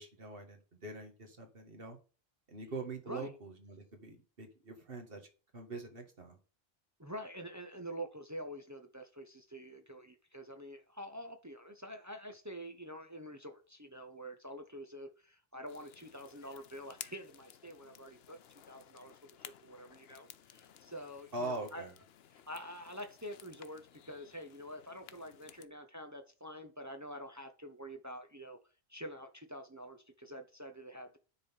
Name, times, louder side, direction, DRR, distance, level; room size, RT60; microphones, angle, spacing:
voice 1, 0.0-2.0 2.5-5.3 5.5-6.4 21.3-21.9, right 2 dB, 65° right, 2.0 m, -43 dB
voice 2, 7.0-18.4 18.7-21.8 22.3-28.6 28.9-31.2, equal, 20° right, 0.8 m, -47 dB
sound 1, 15.7-25.7, left 10 dB, 75° left, 0.9 m, -56 dB
10.0 x 4.2 x 5.5 m
omnidirectional pair, 1.0 m